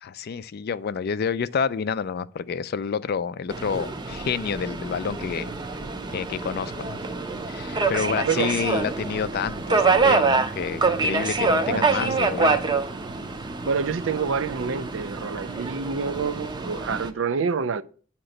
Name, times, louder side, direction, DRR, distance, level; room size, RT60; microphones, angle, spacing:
voice 1, 0.0-5.5 6.1-6.9 7.5-12.6, left 6 dB, 50° left, 0.4 m, -29 dB
Subway metro underground, 3.5-17.1, right 3 dB, 25° right, 0.6 m, -26 dB
voice 2, 11.7-12.2 13.6-17.8, right 5 dB, 70° right, 0.5 m, -27 dB
8.8 x 2.9 x 6.4 m
head